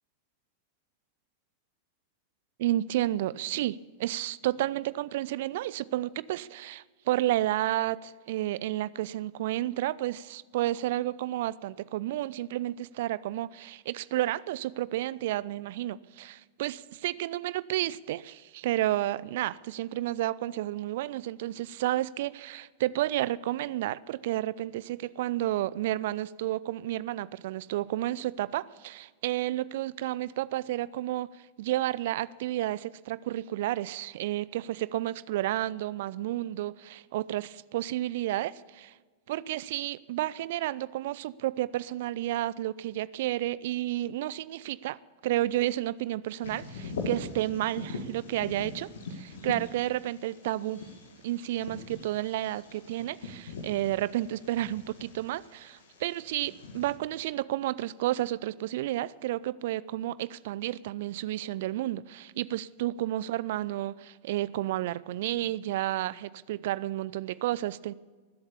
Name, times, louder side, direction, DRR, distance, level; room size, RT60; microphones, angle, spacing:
voice 1, 2.6-31.3 31.6-38.9 39.3-50.8 51.2-67.9, right 14 dB, 55° right, 0.4 m, -31 dB
Bird vocalization bird call bird song, 46.4-56.9, left 3 dB, 65° left, 2.0 m, -42 dB
20.0 x 7.9 x 7.0 m
figure-of-eight pair, 90°, 0 cm